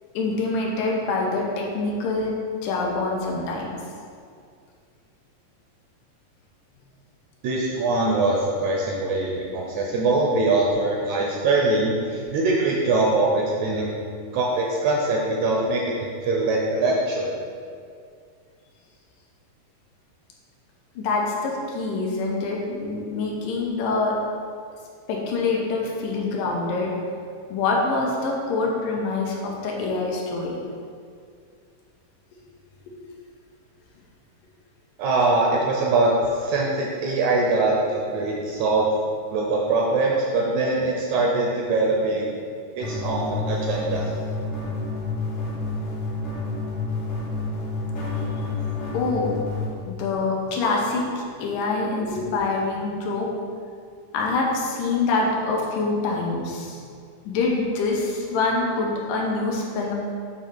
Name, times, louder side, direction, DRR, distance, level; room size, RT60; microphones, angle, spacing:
voice 1, 0.1-3.8 21.0-24.1 25.1-26.9 27.5-30.6 48.9-49.3 49.9-53.3 54.1-56.8 57.3-59.9, left 3 dB, 80° left, -2 dB, 2.3 m, -25 dB
voice 2, 7.4-13.9 14.3-15.8 16.2-17.3 35.0-38.9 39.3-42.3 42.8-44.1, right 2 dB, 80° right, -2 dB, 1.7 m, -22 dB
sound 1, 42.8-49.7, left 3 dB, 55° left, 1.5 m, -29 dB
7.9 x 2.8 x 5.0 m, 2.2 s
omnidirectional pair, 3.8 m